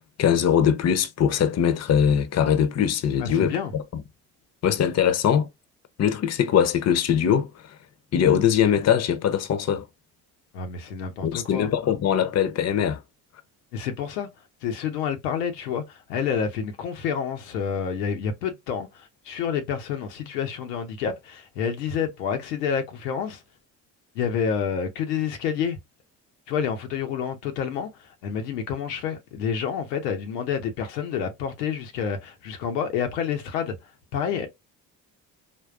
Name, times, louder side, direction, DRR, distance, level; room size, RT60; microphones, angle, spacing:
voice 1, 0.0-3.6 4.6-5.5 6.0-7.8 8.1-9.8 11.2-13.0, left 8 dB, 35° left, 0.6 m, -21 dB
voice 2, 3.2-3.7 10.5-11.7 13.7-14.3 14.6-23.4 24.1-25.8 26.5-33.8 34.1-34.5, left 7 dB, 85° left, 0.7 m, -28 dB
3.6 x 2.2 x 2.4 m
hypercardioid pair, 50°, 47 cm